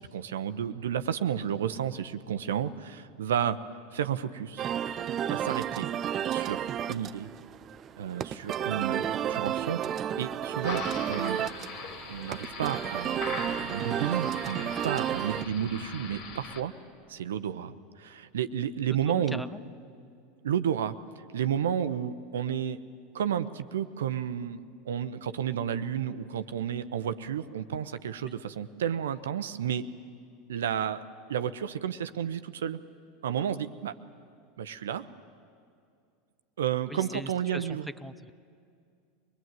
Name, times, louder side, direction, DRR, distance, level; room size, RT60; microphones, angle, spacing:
voice 1, 0.0-3.6 3.9-4.7 5.3-5.9 6.3-6.6 6.9-7.3 8.0-11.5 12.1-16.7 17.1-19.4 20.4-21.0 21.3-22.8 23.1-29.9 30.5-31.0 31.3-32.8 33.2-33.9 34.6-35.1 36.6-37.9, right 9 dB, 70° right, 11 dB, 0.8 m, -32 dB
sound 1, 4.6-15.4, right 10 dB, 35° right, 0.5 m, -32 dB
sound 2, 10.6-16.6, left 4 dB, 55° left, 2.7 m, -40 dB
voice 2, 18.9-19.6 28.2-28.4 36.9-38.3, equal, ahead, 15 dB, 0.7 m, -40 dB
23.5 x 21.0 x 9.2 m, 2.3 s
figure-of-eight pair, 80°, 0 cm